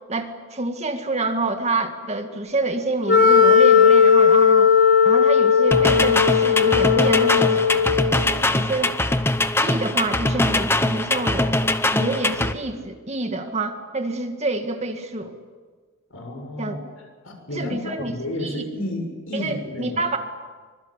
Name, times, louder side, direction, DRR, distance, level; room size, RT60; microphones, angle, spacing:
voice 1, 0.1-4.7 5.0-7.7 8.2-8.9 9.6-11.6 11.9-15.3 16.6-16.7 17.5-18.1 18.4-18.6 19.3-20.2, right 2 dB, 30° right, 6 dB, 2.0 m, -27 dB
Wind instrument woodwind instrument, 3.1-8.2, left 6 dB, 55° left, 3.7 m, -16 dB
sound 1, 5.7-12.5, left 2 dB, 10° left, 0.9 m, -22 dB
voice 2, 16.1-16.8 17.2-20.0, left 1 dB, 80° left, 3 dB, 6.7 m, -31 dB
25.0 x 22.0 x 8.2 m, 1.4 s
head